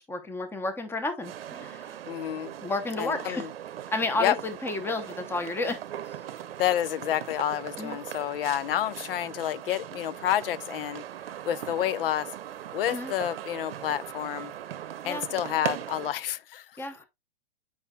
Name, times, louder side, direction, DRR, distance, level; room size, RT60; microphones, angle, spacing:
voice 1, 0.0-2.0 2.6-3.4 3.9-6.2 7.8-8.0 12.9-13.1 15.0-15.2 16.8-17.1, left 2 dB, 10° left, 0.9 m, -32 dB
sound 1, 1.2-16.1, right 11 dB, 75° right, 0.8 m, -39 dB
voice 2, 2.1-2.5 3.0-3.5 4.2-4.4 6.6-11.0 11.5-12.3 12.7-14.5 15.0-16.7, left 12 dB, 70° left, 0.6 m, -29 dB
8.7 x 4.9 x 2.3 m
hypercardioid pair, 130°, 30 cm